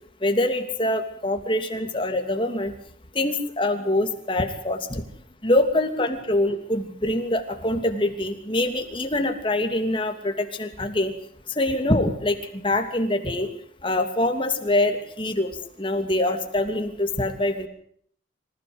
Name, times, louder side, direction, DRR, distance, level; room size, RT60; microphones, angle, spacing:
voice 1, 0.2-2.7 3.1-5.0 5.4-11.1 11.5-13.5 13.8-17.7, left 1 dB, 25° left, 5 dB, 2.8 m, -24 dB
26.0 x 16.0 x 8.1 m, 0.64 s
head